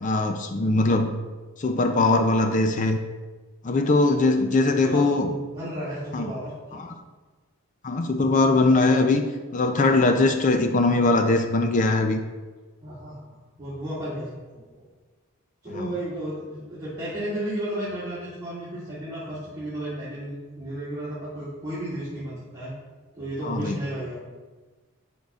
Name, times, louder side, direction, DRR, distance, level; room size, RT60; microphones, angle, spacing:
voice 1, 0.0-1.1 1.6-3.0 3.6-5.3 6.1-6.3 6.7-6.9 7.8-9.3 9.5-12.2 15.7-15.9 23.4-23.8, left 2 dB, 35° left, 6 dB, 0.4 m, -21 dB
voice 2, 4.8-6.5 12.8-13.1 13.6-14.9 15.6-22.7 23.1-24.3, right 1 dB, 20° right, -12 dB, 2.2 m, -33 dB
10.5 x 5.3 x 2.4 m, 1.3 s
head